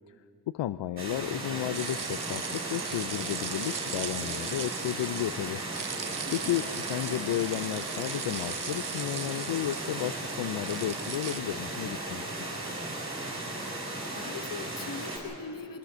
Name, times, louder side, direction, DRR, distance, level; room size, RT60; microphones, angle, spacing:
voice 1, 0.5-5.6 6.3-12.2, left 12 dB, 70° left, 13 dB, 0.6 m, -33 dB
sound 1, 1.0-15.2, right 2 dB, 30° right, 5.5 m, -36 dB
sound 2, 1.7-11.4, right 7 dB, 45° right, 0.9 m, -39 dB
voice 2, 6.2-6.6 13.9-15.8, left 5 dB, 45° left, 9 dB, 1.2 m, -42 dB
23.5 x 20.0 x 6.2 m, 2.6 s
wide cardioid pair, 115°, 46 cm